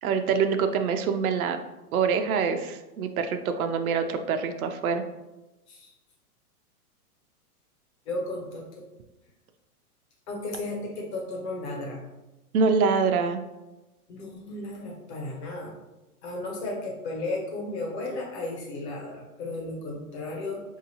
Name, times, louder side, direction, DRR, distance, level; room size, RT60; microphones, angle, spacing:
voice 1, 0.0-1.6 1.9-5.0 12.5-13.4, right 5 dB, 70° right, 7 dB, 0.5 m, -25 dB
voice 2, 8.0-8.9 10.3-12.0 14.1-15.7 16.2-20.6, left 2 dB, 45° left, -2 dB, 1.2 m, -34 dB
4.3 x 2.8 x 2.8 m, 1.0 s
hypercardioid pair, 160°, 45 cm